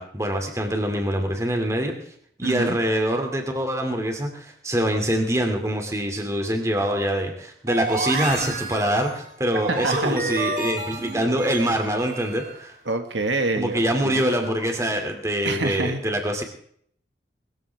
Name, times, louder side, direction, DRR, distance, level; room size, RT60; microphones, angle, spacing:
voice 1, 0.0-1.9 2.4-12.8 13.6-16.4, equal, 15° right, 4 dB, 2.5 m, -24 dB
voice 2, 2.4-2.8 9.7-10.4 12.8-14.2 15.4-16.0, right 2 dB, 90° right, 6 dB, 1.7 m, -27 dB
sound 1, 7.7-12.6, right 2 dB, 50° right, 3.3 m, -30 dB
20.5 x 14.5 x 3.5 m, 0.64 s
head